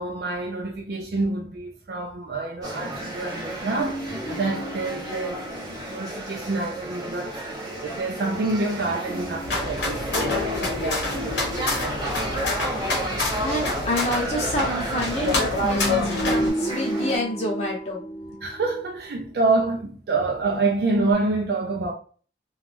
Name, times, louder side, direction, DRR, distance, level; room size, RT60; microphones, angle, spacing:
voice 1, 0.0-5.4 5.9-7.3 7.8-12.2 18.4-21.9, right 3 dB, 55° right, 0.4 m, -27 dB
sound 1, 2.6-17.2, right 1 dB, 20° right, 0.8 m, -33 dB
sound 2, 3.8-6.4 9.1-12.9 15.5-19.3 21.0-21.1, equal, 20° left, 0.6 m, -33 dB
sound 3, 9.4-16.5, left 2 dB, 75° left, 0.9 m, -27 dB
voice 2, 13.3-18.0, left 1 dB, 35° left, 0.9 m, -28 dB
3.0 x 2.3 x 2.5 m
head